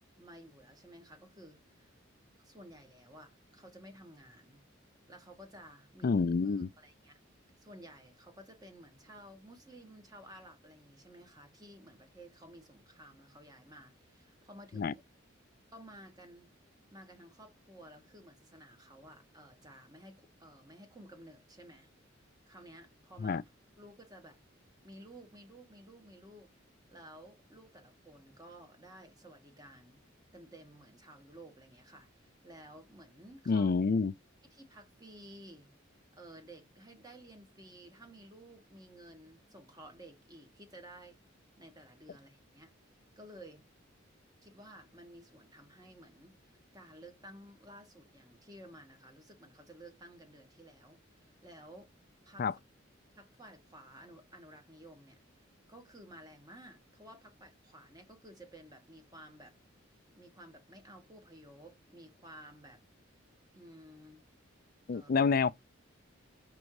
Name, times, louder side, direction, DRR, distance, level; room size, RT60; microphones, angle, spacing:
voice 1, 0.2-1.9 2.4-4.6 5.1-7.2 7.6-14.9 15.7-16.5 16.9-21.9 22.5-23.4 23.8-24.4 24.8-26.5 26.9-30.0 30.3-33.7 34.5-35.7 36.2-41.2 41.6-42.7 43.2-43.7 44.4-51.9 52.2-52.4 53.1-55.2 55.7-59.6 60.2-62.8 63.5-64.2 64.9-65.1, right 1 dB, 20° right, 1.2 m, -54 dB
voice 2, 6.0-6.7 14.7-14.9 23.2-23.4 33.5-34.1 52.4-52.5 64.9-65.5, left 4 dB, 45° left, 0.4 m, -28 dB
5.3 x 3.7 x 4.7 m
head